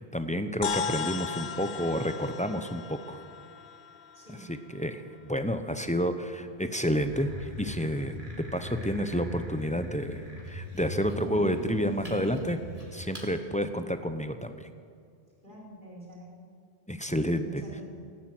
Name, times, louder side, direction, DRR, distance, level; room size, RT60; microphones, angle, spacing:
voice 1, 0.1-3.2 4.7-7.3 7.6-8.2 8.5-12.6 12.9-14.7 16.9-17.4, equal, 10° left, 8 dB, 0.7 m, -30 dB
sound 1, 0.6-5.2, left 7 dB, 65° left, 0.9 m, -37 dB
voice 2, 4.1-4.5 15.4-16.3 17.1-17.8, right 1 dB, 55° right, -5 dB, 5.1 m, -47 dB
sound 2, 7.0-13.3, equal, 35° right, 2.6 m, -39 dB
15.0 x 12.0 x 7.9 m, 2.4 s
omnidirectional pair, 1.0 m